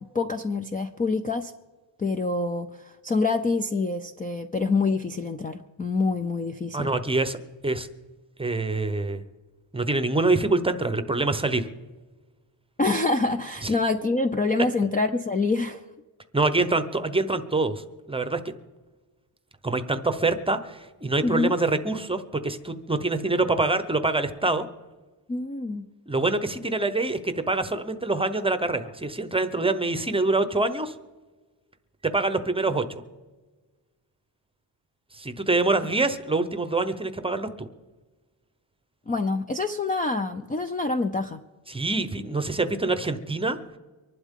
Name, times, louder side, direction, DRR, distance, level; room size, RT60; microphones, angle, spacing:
voice 1, 0.1-1.5 2.0-6.9 12.8-15.8 21.2-21.6 25.3-25.8 39.1-41.4, left 3 dB, 20° left, 7 dB, 0.5 m, -26 dB
voice 2, 6.7-7.4 7.6-7.9 8.4-9.2 9.7-11.7 13.6-13.7 16.3-17.8 18.1-18.4 19.6-24.7 26.1-30.9 32.0-32.8 35.1-37.7 41.7-43.6, right 2 dB, 10° right, 10 dB, 0.8 m, -25 dB
24.5 x 11.5 x 3.7 m, 1.3 s
wide cardioid pair, 145°, 47 cm